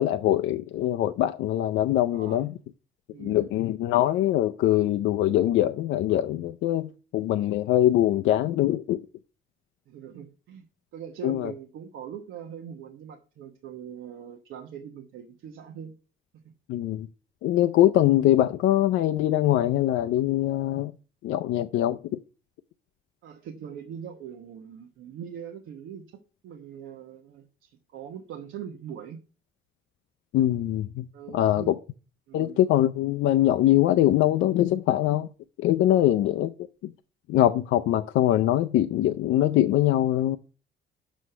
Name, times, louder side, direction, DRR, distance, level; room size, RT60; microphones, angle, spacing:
voice 1, 0.0-2.5 3.2-9.0 11.2-11.5 16.7-17.1 17.4-20.9 21.2-22.2 30.3-31.1 31.3-31.7 32.3-35.3 35.6-36.5 37.3-40.4, left 13 dB, 85° left, 0.5 m, -23 dB
voice 2, 2.1-2.5 3.1-3.5 9.9-10.6 10.9-15.9 23.2-29.2 31.1-31.8 32.3-32.6 35.9-36.2, right 8 dB, 85° right, 1.0 m, -42 dB
6.3 x 6.2 x 5.5 m
cardioid pair, 90°, 20 cm